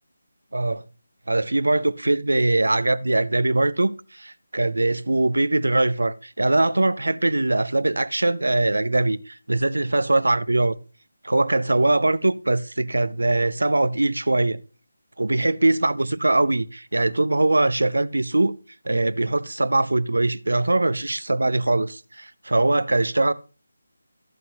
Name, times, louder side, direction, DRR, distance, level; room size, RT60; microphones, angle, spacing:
voice 1, 0.5-0.8 1.3-10.8 11.2-14.6 15.2-18.5 18.8-23.3, right 2 dB, 70° right, 0.5 m, -22 dB
13.5 x 8.3 x 2.8 m
figure-of-eight pair, 155°, 0 cm